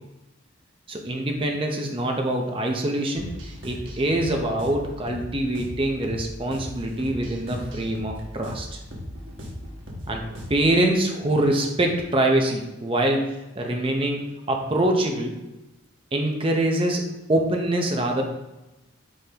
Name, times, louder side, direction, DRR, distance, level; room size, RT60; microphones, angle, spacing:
voice 1, 0.9-8.8 10.1-10.2 10.5-15.3 16.1-17.0 17.3-18.2, right 1 dB, 25° right, 2 dB, 0.7 m, -24 dB
sound 1, 3.2-10.8, equal, 65° right, 1.2 m, -38 dB
8.6 x 3.9 x 2.9 m, 1.0 s
head